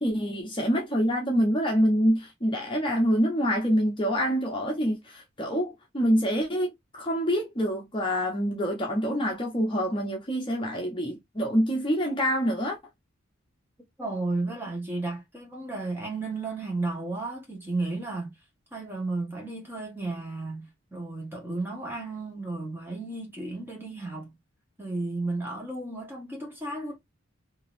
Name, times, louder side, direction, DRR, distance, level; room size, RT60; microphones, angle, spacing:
voice 1, 0.0-12.8, equal, 25° left, 0.8 m, -26 dB
voice 2, 14.0-18.3 18.7-24.3 24.8-27.0, right 2 dB, 10° right, 1.3 m, -33 dB
3.7 x 2.8 x 2.5 m
head